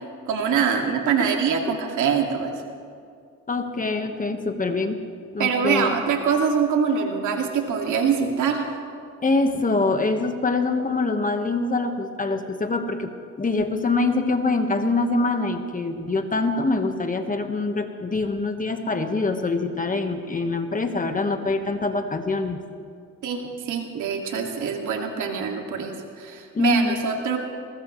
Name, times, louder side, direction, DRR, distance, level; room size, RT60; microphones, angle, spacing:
voice 1, 0.3-2.6 5.4-8.7 23.2-27.4, right 6 dB, 80° right, 2 dB, 2.3 m, -24 dB
voice 2, 3.5-5.0 5.3-5.9 9.2-22.6 26.5-27.0, left 3 dB, 25° left, 6 dB, 1.4 m, -24 dB
21.5 x 19.5 x 3.2 m, 2.4 s
cardioid pair, 90°, 30 cm